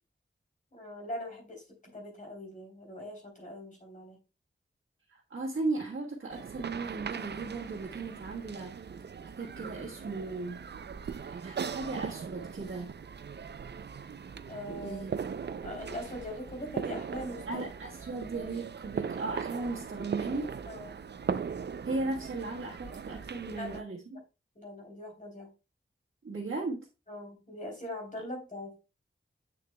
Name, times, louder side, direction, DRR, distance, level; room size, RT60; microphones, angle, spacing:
voice 1, 0.7-4.2 14.5-15.0 15.6-17.6 20.6-21.0 23.4-23.8 24.5-25.5 27.1-28.8, left 1 dB, 40° left, 1 dB, 3.2 m, -41 dB
voice 2, 5.1-8.9 9.4-10.6 11.4-13.0 14.8-15.3 17.5-20.5 21.8-24.2 26.2-26.9, right 3 dB, 85° right, -4 dB, 1.4 m, -36 dB
sound 1, 6.3-23.8, right 6 dB, 55° right, 0.4 m, -39 dB
8.4 x 6.7 x 2.2 m, 0.28 s
wide cardioid pair, 70°, 20 cm